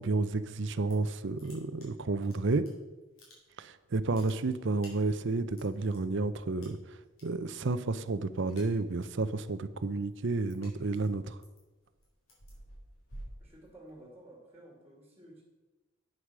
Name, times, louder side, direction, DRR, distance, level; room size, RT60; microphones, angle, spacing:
voice 1, 0.0-2.7 3.6-6.8 7.2-11.4, right 3 dB, 60° right, 13 dB, 0.6 m, -31 dB
sound 1, 0.9-1.1 1.4-2.7 3.0-3.7 4.0-6.0 6.6-7.2 7.5-7.9 8.2-9.2 9.6-14.1, equal, 65° left, 4.4 m, -52 dB
voice 2, 13.4-15.4, right 1 dB, 10° right, -1 dB, 2.5 m, -53 dB
9.0 x 8.2 x 6.1 m, 1.2 s
head